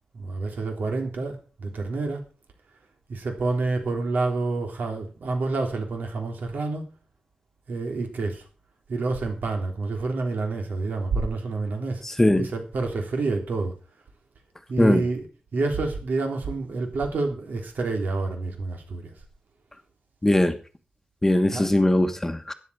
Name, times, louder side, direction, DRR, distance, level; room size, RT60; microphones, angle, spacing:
voice 1, 0.1-2.2 3.1-6.9 7.7-8.4 8.9-12.0 12.4-13.7 14.7-15.3 15.5-19.1 21.5-21.7, right 3 dB, 85° right, 3.4 m, -28 dB
voice 2, 20.2-20.5 21.2-22.5, left 1 dB, 15° left, 1.2 m, -20 dB
13.0 x 10.0 x 4.8 m
wide cardioid pair, 155°, 3 cm